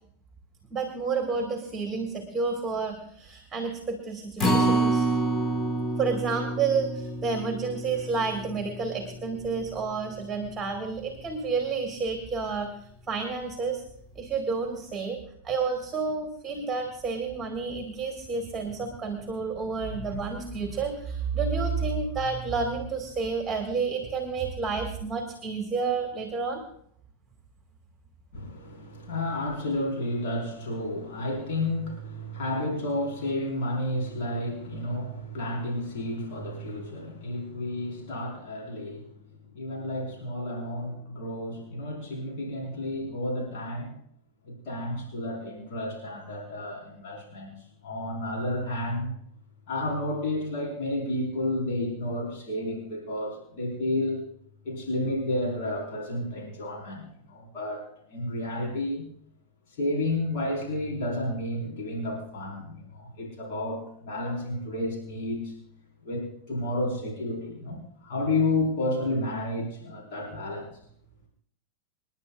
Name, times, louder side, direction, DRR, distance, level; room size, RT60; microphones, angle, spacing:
voice 1, 0.7-5.1 6.0-12.7 13.1-13.8 14.2-15.2 15.4-26.6, right 4 dB, 15° right, 3 dB, 2.0 m, -30 dB
Acoustic guitar, 4.4-10.7 11.1-11.2 11.6-11.7, right 2 dB, 20° left, 1.9 m, -29 dB
voice 2, 28.3-39.1 39.5-43.9 44.5-47.5 47.8-49.1 49.7-54.3 54.6-57.8 58.1-59.1 59.8-65.5 66.0-70.7, left 1 dB, 50° left, -2 dB, 4.6 m, -31 dB
28.0 x 10.5 x 2.5 m, 0.67 s
figure-of-eight pair, 90°, 0 cm